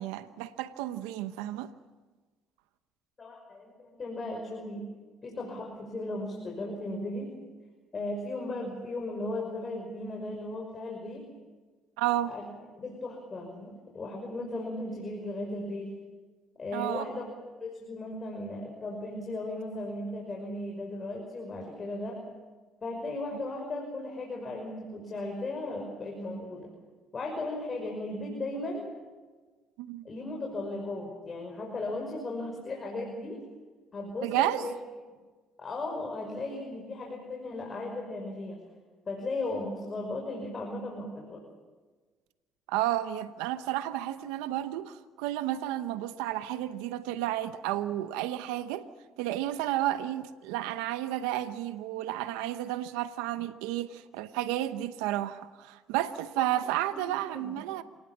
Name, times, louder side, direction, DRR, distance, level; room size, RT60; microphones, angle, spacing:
voice 1, 0.0-1.7 12.0-12.3 16.7-17.1 29.8-30.1 34.2-34.7 42.7-48.9 49.2-57.8, right 13 dB, 90° right, 0.9 m, -32 dB
voice 2, 3.2-4.8 5.2-7.3 7.9-11.3 12.3-12.4 12.8-15.9 16.6-17.2 17.6-22.2 22.8-26.7 27.1-28.9 30.0-33.4 33.9-34.7 35.6-38.6 39.1-41.4 56.4-56.5 57.2-57.5, left 2 dB, 35° left, 5.7 m, -36 dB
27.5 x 19.5 x 7.3 m
supercardioid pair, 75°, 0 cm